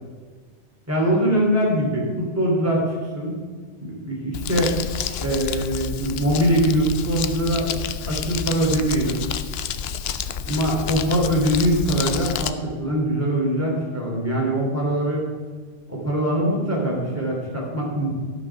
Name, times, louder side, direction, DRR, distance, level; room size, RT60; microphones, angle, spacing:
voice 1, 0.9-2.9 3.1-3.4 3.8-4.7 5.2-7.7 8.0-9.2 10.5-15.2 15.9-18.1, right 1 dB, 15° right, -3 dB, 2.8 m, -22 dB
Crumpling crinkling, 4.3-12.5, left 8 dB, 65° left, 0.8 m, -29 dB
12.0 x 6.0 x 6.0 m, 1.5 s
omnidirectional pair, 1.2 m